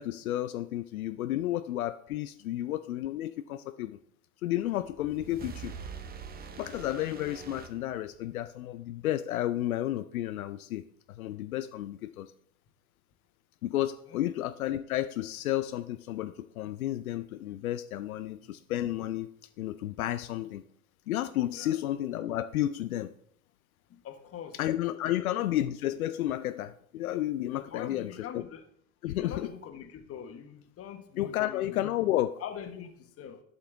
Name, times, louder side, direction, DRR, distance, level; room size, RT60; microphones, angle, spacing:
voice 1, 0.0-4.0 4.4-5.8 6.6-10.8 11.1-12.3 13.6-19.3 19.6-20.6 21.1-23.1 24.6-28.4 29.0-29.5 31.2-32.4, left 13 dB, 80° left, 10 dB, 0.6 m, -32 dB
sound 1, 4.7-8.5, right 6 dB, 20° right, 0.8 m, -44 dB
voice 2, 24.0-24.6 25.0-25.5 27.5-28.6 29.1-31.8 32.4-33.4, left 8 dB, 35° left, 6 dB, 1.4 m, -43 dB
12.0 x 5.7 x 3.5 m, 0.67 s
hypercardioid pair, 90°, 42 cm